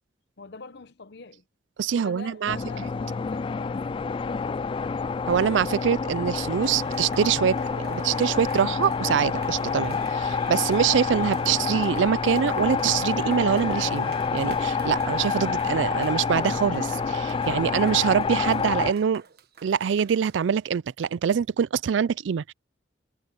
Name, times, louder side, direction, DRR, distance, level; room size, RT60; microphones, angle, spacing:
voice 1, 0.4-1.4 1.9-4.8 18.0-18.4, left 4 dB, 65° left, 0.9 m, -45 dB
voice 2, 1.8-2.6 5.2-7.6 7.9-19.2 19.6-22.5, right 7 dB, 80° right, 0.4 m, -24 dB
sound 1, 2.5-18.9, left 5 dB, 30° left, 0.3 m, -28 dB
Cheering, 6.5-20.4, right 4 dB, 60° right, 1.3 m, -44 dB
head